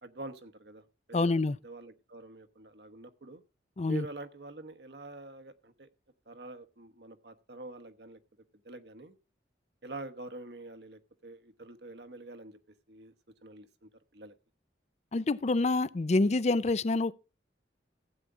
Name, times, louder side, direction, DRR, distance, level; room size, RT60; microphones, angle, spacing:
voice 1, 0.0-3.4 3.9-5.9 6.3-8.2 8.6-9.2 9.8-12.6 12.9-13.1 13.4-14.3, right 2 dB, 65° right, 1.1 m, -46 dB
voice 2, 1.1-1.6 3.8-4.1 15.1-17.1, left 2 dB, 40° left, 0.5 m, -27 dB
15.5 x 8.3 x 3.7 m
head